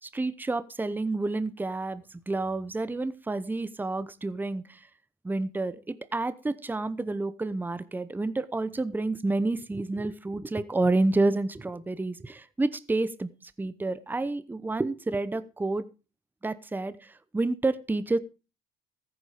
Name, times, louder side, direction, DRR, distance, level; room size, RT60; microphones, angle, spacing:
voice 1, 0.0-4.9 5.2-13.3 13.6-15.9 16.4-18.2, right 2 dB, 10° right, 15 dB, 0.9 m, -29 dB
14.5 x 8.9 x 5.0 m, 0.32 s
cardioid pair, 110°, 17 cm